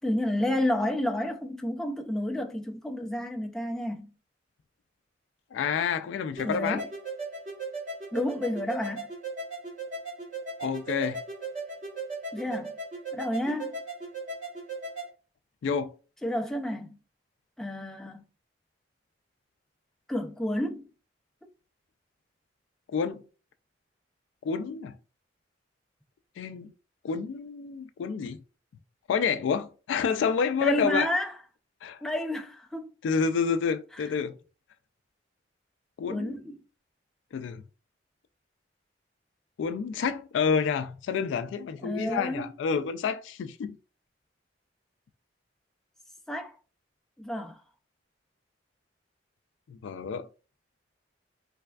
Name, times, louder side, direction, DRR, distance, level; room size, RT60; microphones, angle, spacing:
voice 1, 0.0-4.1 6.4-6.9 8.1-9.1 12.3-12.7 13.1-13.8 16.2-17.0 17.6-18.2 20.1-20.9 30.6-31.3 32.0-32.9 34.0-34.1 36.1-36.6 41.8-42.5 46.3-46.5 47.2-47.6, left 1 dB, 5° left, 0.3 m, -30 dB
voice 2, 5.5-6.8 10.6-11.2 15.6-15.9 22.9-23.2 24.4-25.0 26.4-26.7 27.0-28.4 29.1-31.1 31.8-32.0 33.0-34.4 36.0-36.4 37.3-37.6 39.6-43.8 49.7-50.3, left 6 dB, 80° left, 0.3 m, -29 dB
sound 1, 6.4-15.1, right 3 dB, 45° right, 0.9 m, -37 dB
3.3 x 3.2 x 2.3 m
head